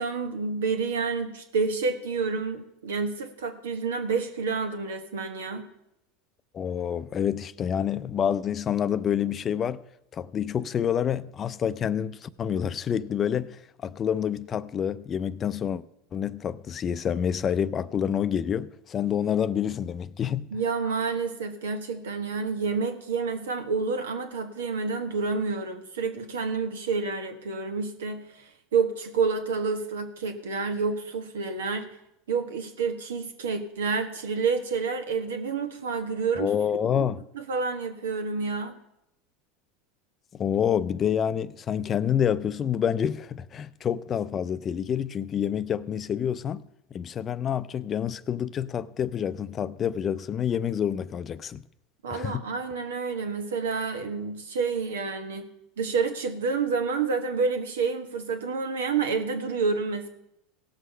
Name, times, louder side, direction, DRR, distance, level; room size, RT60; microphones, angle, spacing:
voice 1, 0.0-5.7 20.5-31.9 32.3-36.5 36.9-37.1 37.3-38.7 52.0-55.5 55.8-60.1, right 4 dB, 85° right, 1.3 m, -29 dB
voice 2, 6.5-9.8 10.1-15.8 16.1-20.5 36.4-37.2 40.4-46.6 46.9-51.6 52.1-52.4, left 8 dB, 35° left, 0.5 m, -28 dB
17.0 x 6.3 x 5.6 m
hypercardioid pair, 100°, 0 cm